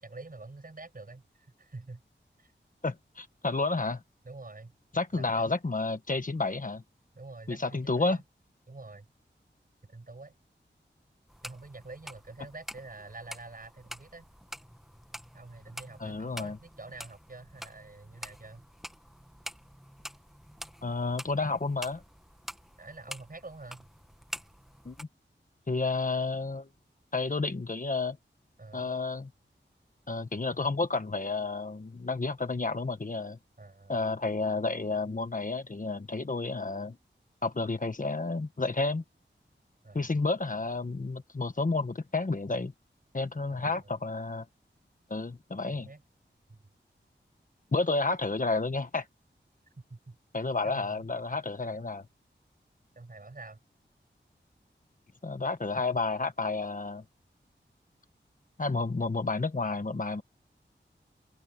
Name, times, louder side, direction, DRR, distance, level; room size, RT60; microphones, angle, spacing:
voice 1, 0.0-2.0 2.4-2.5 4.2-4.7 5.1-5.5 7.1-8.2 8.7-9.1 9.9-10.3 11.4-14.3 15.3-18.6 22.8-23.9 28.6-28.9 33.6-34.0 39.8-40.1 43.5-43.9 45.7-46.0 46.5-46.6 49.9-50.2 50.6-51.0 53.0-53.6, right 3 dB, 45° right, 7.3 m, -47 dB
voice 2, 2.8-4.0 4.9-6.8 7.5-8.2 16.0-16.6 20.8-22.0 24.8-25.1 25.7-26.7 27.1-28.2 28.7-29.3 30.1-33.4 33.9-37.0 37.4-39.0 39.9-42.7 43.1-44.4 45.1-45.9 47.7-49.0 50.3-52.0 55.2-57.0 58.6-60.2, left 3 dB, 45° left, 1.5 m, -31 dB
sound 1, 11.3-25.0, equal, ahead, 1.5 m, -47 dB
wide cardioid pair, 80°, 20 cm